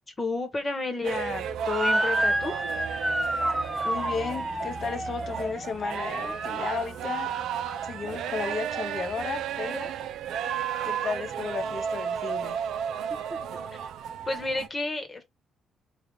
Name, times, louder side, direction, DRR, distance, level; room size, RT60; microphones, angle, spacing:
voice 1, 0.2-2.6 14.3-15.2, left 3 dB, 30° left, 1.1 m, -31 dB
sound 1, 1.0-14.7, right 8 dB, 75° right, 0.4 m, -33 dB
Motor vehicle (road) / Siren, 1.7-7.0, right 1 dB, 5° right, 0.4 m, -29 dB
sound 2, 1.7-2.2 3.4-4.4 5.3-5.6 6.6-6.9 7.3-7.9 8.4-9.0 10.7-11.2, right 5 dB, 55° right, 0.8 m, -42 dB
voice 2, 3.8-7.3 7.8-9.9 10.8-12.6, left 5 dB, 55° left, 0.6 m, -34 dB
3.3 x 2.4 x 3.3 m
supercardioid pair, 65°, 0 cm